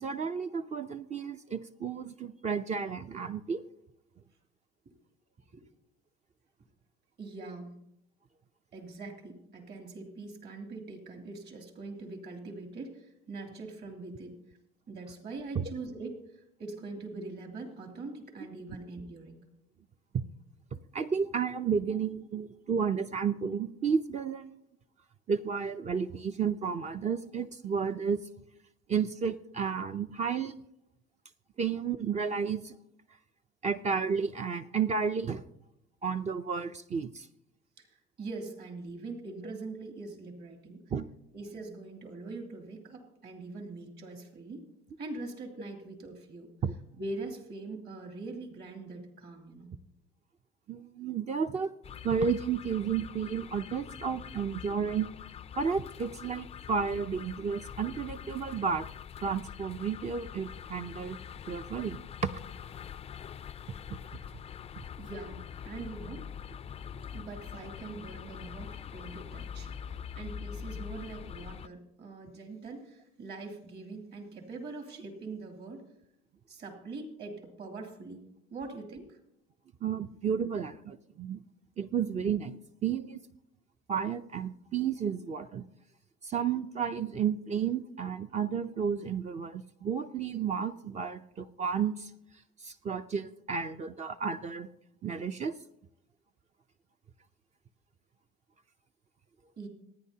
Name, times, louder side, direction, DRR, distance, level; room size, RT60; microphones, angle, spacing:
voice 1, 0.0-3.6 15.5-15.7 20.1-20.2 20.7-24.6 25.3-28.2 28.9-30.6 31.6-32.7 33.6-35.4 36.0-37.3 40.9-41.1 46.6-46.7 50.7-51.7 52.0-55.1 55.6-58.9 59.2-61.2 61.5-62.3 63.9-64.0 79.8-81.4 81.8-83.2 83.9-85.6 86.2-92.1 92.6-94.7 95.0-95.5, right 6 dB, 35° right, 8 dB, 0.5 m, -32 dB
voice 2, 7.2-7.7 8.7-14.4 14.9-19.4 21.6-21.9 37.8-40.8 41.3-44.6 45.0-46.5 47.0-49.7 65.0-66.3 67.1-75.9 76.5-78.2 78.5-79.2 99.6-99.7, right 3 dB, 50° right, 3 dB, 2.8 m, -43 dB
sound 1, 51.8-71.7, left 8 dB, 30° left, 0.4 m, -44 dB
26.0 x 9.9 x 2.8 m, 0.80 s
cardioid pair, 110°, 21 cm